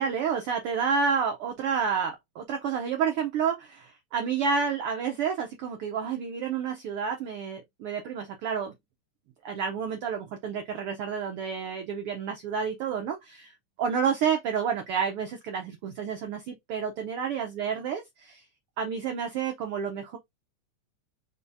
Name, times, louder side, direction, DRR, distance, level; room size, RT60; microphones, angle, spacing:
voice 1, 0.0-8.7 9.4-13.5 13.8-18.4 18.8-20.2, right 6 dB, 80° right, 1.2 m, -30 dB
4.7 x 2.7 x 3.4 m
omnidirectional pair, 3.4 m